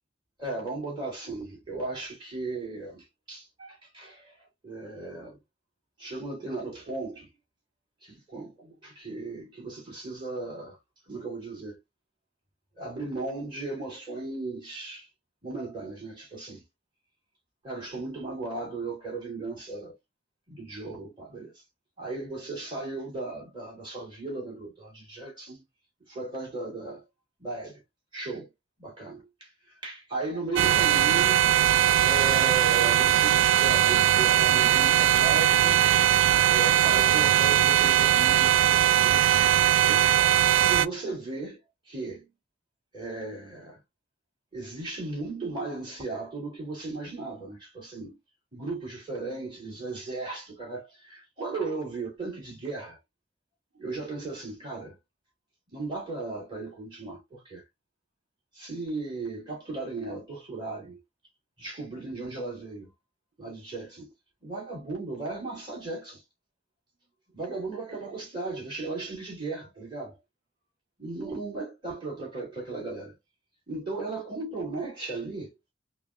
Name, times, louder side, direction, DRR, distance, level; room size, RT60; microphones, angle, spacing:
voice 1, 0.4-4.3 4.6-5.4 6.0-7.3 8.0-10.8 11.1-11.8 12.8-15.1 15.4-16.6 17.6-20.0 20.5-21.5 22.0-25.6 26.1-27.0 27.4-27.8 28.1-28.5 28.8-29.5 29.8-31.4 32.0-35.8 36.5-40.1 40.7-41.6 41.9-42.3 42.9-43.8 44.5-48.2 48.5-53.0 53.7-55.0 55.7-57.6 58.5-61.0 61.6-62.9 63.4-64.1 64.4-66.2 67.3-70.2 71.0-73.1 73.7-75.5, right 3 dB, 25° right, 2.6 m, -36 dB
sound 1, 30.6-40.9, right 11 dB, 85° right, 0.3 m, -20 dB
4.9 x 2.3 x 2.5 m
head